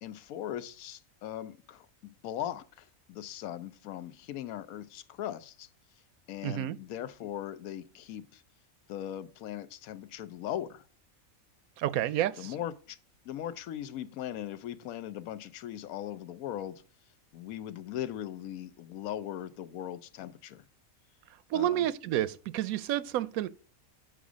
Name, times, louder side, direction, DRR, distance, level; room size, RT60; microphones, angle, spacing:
voice 1, 0.0-5.7 6.3-8.4 8.9-10.9 12.4-13.0 13.2-16.8 17.3-20.6 21.5-21.9, left 11 dB, 85° left, 1.1 m, -39 dB
voice 2, 6.4-6.8 11.8-12.5 21.5-23.5, right 13 dB, 85° right, 1.0 m, -30 dB
7.8 x 5.0 x 4.9 m
omnidirectional pair, 1.4 m